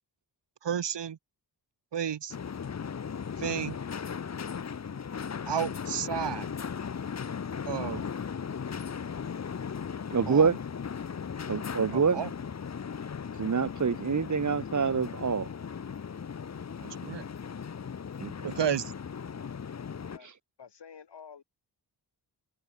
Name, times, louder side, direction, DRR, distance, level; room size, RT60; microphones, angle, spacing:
voice 1, 0.6-1.2 1.9-2.4 3.4-3.8 5.5-6.5 7.7-8.0 10.3-10.5 11.9-12.3 16.8-17.2 18.4-18.9, right 8 dB, 75° right, 1.9 m, -32 dB
sound 1, 2.3-20.2, left 6 dB, 40° left, 0.8 m, -37 dB
voice 2, 10.1-10.6 11.5-12.2 13.4-15.5 18.2-18.5, right 5 dB, 45° right, 1.5 m, -26 dB
voice 3, 19.9-20.3 20.6-21.4, left 7 dB, 70° left, 4.9 m, -50 dB
wide cardioid pair, 100°, 42 cm